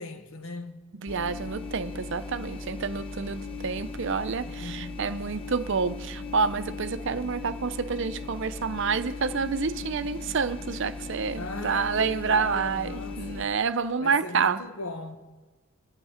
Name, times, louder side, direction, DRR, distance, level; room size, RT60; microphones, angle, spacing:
voice 1, 0.0-0.9 4.4-5.2 11.4-13.5 14.0-15.2, left 2 dB, 80° left, 1.4 m, -38 dB
voice 2, 1.0-14.6, right 5 dB, 60° right, 0.6 m, -28 dB
sound 1, 1.1-13.5, left 3 dB, 25° left, 1.1 m, -38 dB
24.5 x 8.9 x 5.0 m
head